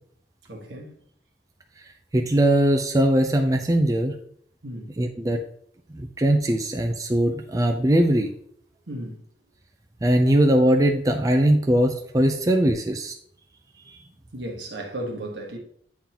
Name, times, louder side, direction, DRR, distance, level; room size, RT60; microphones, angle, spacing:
voice 1, 0.5-0.9 4.6-4.9 8.9-9.2 14.3-15.6, right 1 dB, 80° right, 1.4 m, -34 dB
voice 2, 2.1-4.2 5.0-5.4 5.9-8.3 10.0-13.2 13.8-14.0, right 1 dB, 20° right, 0.4 m, -20 dB
8.6 x 3.8 x 2.9 m
head